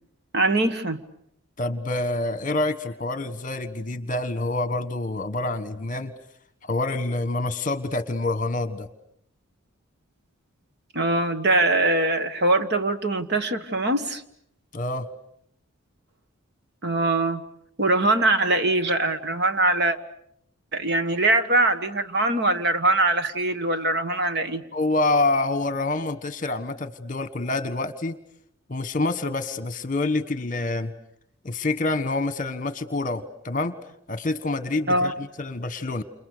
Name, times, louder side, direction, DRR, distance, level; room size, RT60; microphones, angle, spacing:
voice 1, 0.3-1.0 10.9-14.2 16.8-17.4 17.8-20.0 20.7-24.6 34.9-35.1, right 2 dB, 50° right, 9 dB, 1.6 m, -22 dB
voice 2, 1.6-6.1 6.6-8.9 14.7-15.1 24.7-28.2 28.7-30.9 31.4-33.7 34.1-36.0, left 2 dB, 35° left, 12 dB, 1.4 m, -27 dB
29.5 x 28.5 x 6.8 m, 0.71 s
head